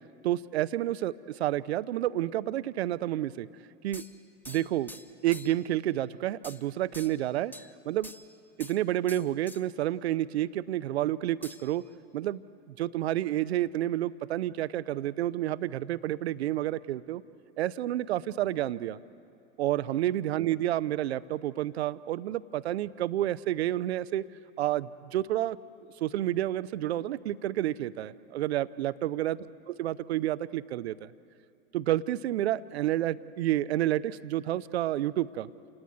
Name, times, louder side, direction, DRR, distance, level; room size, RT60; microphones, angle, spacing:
voice 1, 0.2-1.1 1.4-3.5 3.8-4.0 4.5-4.9 5.2-7.5 7.9-8.1 8.6-11.8 12.1-12.4 12.8-17.2 17.6-19.0 19.6-24.2 24.6-25.6 26.0-31.1 31.7-35.5, right 13 dB, 70° right, 16 dB, 0.7 m, -29 dB
sound 1, 3.9-5.7 6.4-6.7 6.9-7.7 8.0-8.8 9.1-9.6 11.4-11.9, left 1 dB, 5° left, 1.1 m, -47 dB
28.0 x 18.5 x 9.4 m, 2.5 s
figure-of-eight pair, 90°, 34 cm